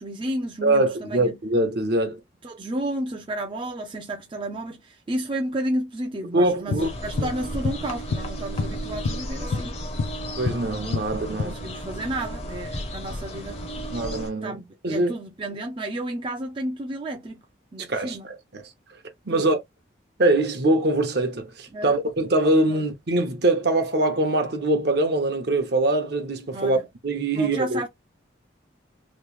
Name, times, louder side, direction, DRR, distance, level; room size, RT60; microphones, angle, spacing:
voice 1, 0.0-1.4 2.4-9.8 11.3-13.9 14.4-17.4 17.7-18.3 19.3-19.5 21.7-22.0 22.7-22.8 26.5-26.9 27.3-27.9, right 1 dB, 25° right, 0.4 m, -32 dB
voice 2, 0.6-2.2 6.3-7.3 10.4-11.5 13.9-15.1 17.9-18.6 19.3-19.6 20.2-26.8 27.0-27.8, right 2 dB, 60° right, 0.8 m, -23 dB
sound 1, 6.7-7.4 7.6-9.3 9.5-10.7 10.9-11.4, left 4 dB, 75° left, 0.4 m, -28 dB
sound 2, 6.8-14.3, equal, 35° left, 0.7 m, -34 dB
3.1 x 2.1 x 3.1 m
head